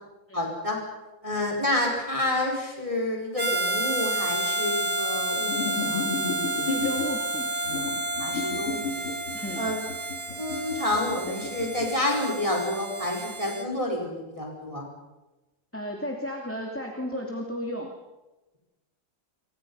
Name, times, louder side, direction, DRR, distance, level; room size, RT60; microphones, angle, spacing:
voice 1, 0.3-0.8 1.2-6.1 8.2-8.8 9.6-9.8 10.4-14.9, left 1 dB, 15° right, 0 dB, 5.0 m, -29 dB
Harmonica, 3.4-13.7, right 1 dB, 30° right, 2.7 m, -30 dB
sound 1, 5.4-7.1 7.6-11.9, left 4 dB, 90° left, 5.2 m, -32 dB
voice 2, 6.5-7.5 9.3-9.7 15.7-17.9, left 1 dB, 5° left, 0 dB, 2.4 m, -34 dB
27.5 x 24.5 x 5.6 m, 1.1 s
omnidirectional pair, 2.4 m